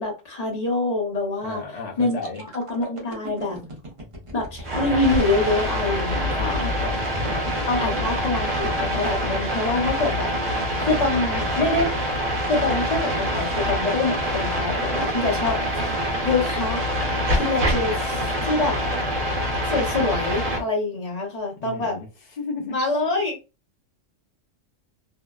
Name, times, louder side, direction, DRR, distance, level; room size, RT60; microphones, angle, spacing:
voice 1, 0.0-1.6 2.0-2.2 2.5-3.6 4.3-6.7 7.7-10.3 10.8-11.9 12.5-16.8 17.3-18.8 19.6-22.0 22.7-23.4, left 2 dB, 35° left, 0.9 m, -25 dB
voice 2, 1.4-2.4 6.3-8.0 21.6-22.8, left 3 dB, 60° left, 0.4 m, -35 dB
sound 1, 2.1-11.9 12.4-12.6, left 3 dB, 30° right, 0.6 m, -36 dB
sound 2, 4.6-20.6, equal, 60° right, 1.2 m, -25 dB
2.7 x 2.0 x 2.3 m
omnidirectional pair, 1.3 m